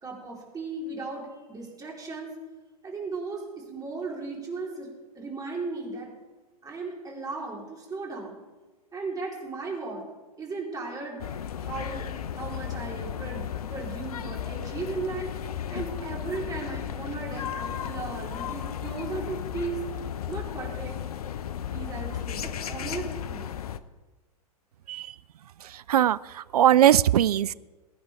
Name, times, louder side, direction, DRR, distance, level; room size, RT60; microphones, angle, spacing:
voice 1, 0.0-2.4 2.8-4.9 5.1-6.1 6.6-8.4 8.9-10.0 10.4-11.2 11.6-15.3 15.7-19.8 20.3-21.0 21.7-23.5, right 3 dB, 20° right, -3 dB, 4.2 m, -36 dB
sound 1, 11.2-23.8, left 9 dB, 70° left, 0.7 m, -34 dB
voice 2, 25.6-27.5, right 11 dB, 75° right, 19 dB, 0.4 m, -21 dB
21.5 x 9.5 x 3.6 m, 1.2 s
hypercardioid pair, 100°, 20 cm